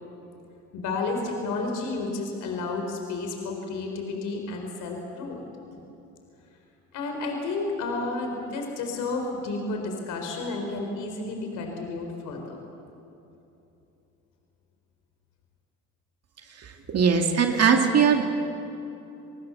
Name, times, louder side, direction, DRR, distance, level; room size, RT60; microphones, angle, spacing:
voice 1, 0.7-5.4 5.7-5.8 6.9-12.6, left 3 dB, 75° left, 3 dB, 4.4 m, -31 dB
voice 2, 16.6-18.2, right 6 dB, 55° right, 3 dB, 2.5 m, -21 dB
29.0 x 20.0 x 7.2 m, 2.9 s
supercardioid pair, 75°, 30 cm